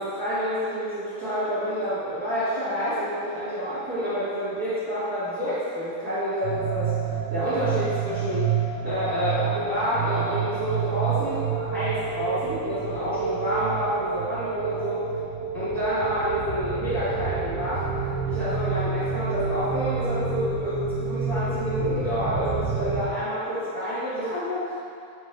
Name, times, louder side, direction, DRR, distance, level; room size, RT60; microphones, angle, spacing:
voice 1, 0.0-8.5 8.8-15.1 15.5-17.8 18.2-24.8, equal, 50° right, -15 dB, 1.1 m, -28 dB
sound 1, 6.4-23.0, right 6 dB, 90° right, 1.8 m, -29 dB
8.7 x 4.4 x 3.2 m, 2.4 s
omnidirectional pair, 4.3 m